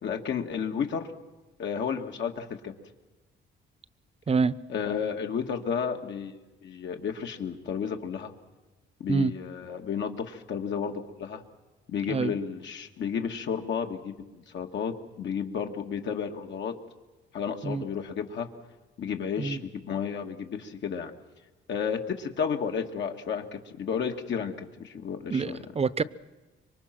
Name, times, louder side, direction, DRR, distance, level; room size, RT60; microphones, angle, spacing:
voice 1, 0.0-1.1 1.6-2.7 4.7-8.3 9.0-11.4 11.9-16.7 17.3-18.5 19.0-21.1 21.7-25.6, left 7 dB, 65° left, 3 dB, 2.2 m, -32 dB
voice 2, 4.3-4.6 9.1-9.3 12.1-12.3 17.6-17.8 19.4-19.6 25.3-26.0, right 5 dB, 30° right, 17 dB, 0.8 m, -26 dB
26.0 x 23.5 x 6.1 m, 1.2 s
cardioid pair, 90°, 20 cm